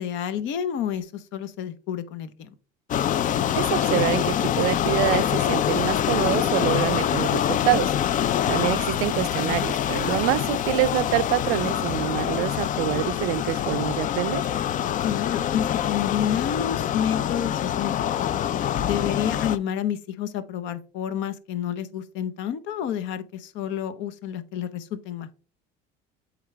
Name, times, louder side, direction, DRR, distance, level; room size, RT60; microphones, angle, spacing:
voice 1, 0.0-2.5 8.3-8.5 15.0-18.1 18.8-25.3, left 9 dB, 65° left, 0.9 m, -29 dB
sound 1, 2.9-19.6, left 10 dB, 40° left, 0.4 m, -25 dB
voice 2, 3.6-7.9 8.5-14.5, right 17 dB, 80° right, 0.4 m, -26 dB
8.0 x 3.9 x 3.3 m
supercardioid pair, 105°, 21 cm